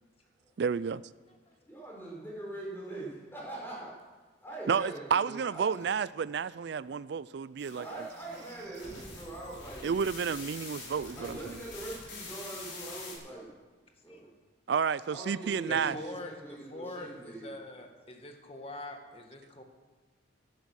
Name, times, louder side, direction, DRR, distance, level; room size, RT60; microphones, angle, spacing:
voice 1, 0.6-1.0 4.7-7.8 9.8-11.4 14.7-15.9, right 6 dB, 60° right, 17 dB, 0.4 m, -30 dB
voice 2, 1.7-4.1 4.4-5.8 7.7-9.9 11.1-13.5 14.0-14.3 15.1-17.5, right 2 dB, 10° left, -4 dB, 5.8 m, -42 dB
sound 1, 7.6-13.1, left 3 dB, 75° left, 5.2 m, -45 dB
voice 3, 15.7-19.6, left 1 dB, 30° left, 4 dB, 1.8 m, -44 dB
15.5 x 12.0 x 6.4 m, 1.3 s
head